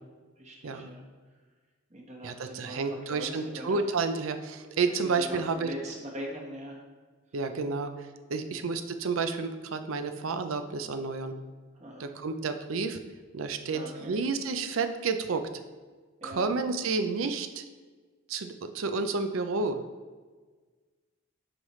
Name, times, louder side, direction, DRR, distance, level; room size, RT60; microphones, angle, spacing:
voice 1, 0.4-1.0 1.9-3.9 4.9-6.8 8.5-8.6 11.7-12.1 13.7-14.2 16.2-16.5, equal, 35° right, -1 dB, 1.2 m, -41 dB
voice 2, 2.2-5.7 7.3-11.3 12.0-13.0 13.3-15.5 16.2-17.6 18.3-19.8, right 4 dB, 80° right, 8 dB, 0.5 m, -30 dB
8.0 x 5.6 x 3.1 m, 1.4 s
head